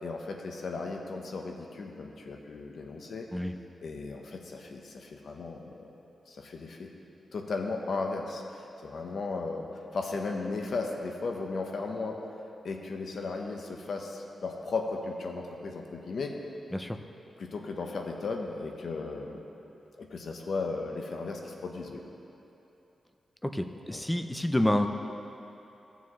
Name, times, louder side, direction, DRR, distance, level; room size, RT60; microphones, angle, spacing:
voice 1, 0.0-3.3 3.8-5.9 6.3-6.9 7.3-9.7 9.9-12.2 12.6-16.3 17.4-19.4 20.0-22.0 23.9-24.0, left 3 dB, 65° left, 2 dB, 0.9 m, -36 dB
voice 2, 23.4-24.9, left 1 dB, 5° left, 7 dB, 0.5 m, -28 dB
16.0 x 7.1 x 3.1 m, 3.0 s
wide cardioid pair, 125°, 0 cm